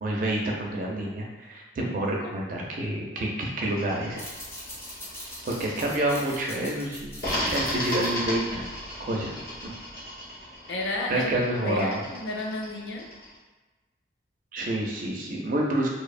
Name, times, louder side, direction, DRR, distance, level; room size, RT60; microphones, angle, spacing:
voice 1, 0.0-4.2 5.4-8.6 9.0-9.3 9.6-9.7 11.1-12.0 14.5-15.9, right 1 dB, 45° right, -2 dB, 0.4 m, -28 dB
sound 1, 3.7-6.4 7.2-13.4, left 1 dB, 50° left, 0.8 m, -35 dB
sound 2, 4.0-9.2, equal, 15° left, 0.4 m, -42 dB
voice 2, 10.7-11.3 11.6-13.1, left 2 dB, 75° left, 0 dB, 0.4 m, -31 dB
2.7 x 2.0 x 2.4 m, 1.2 s
head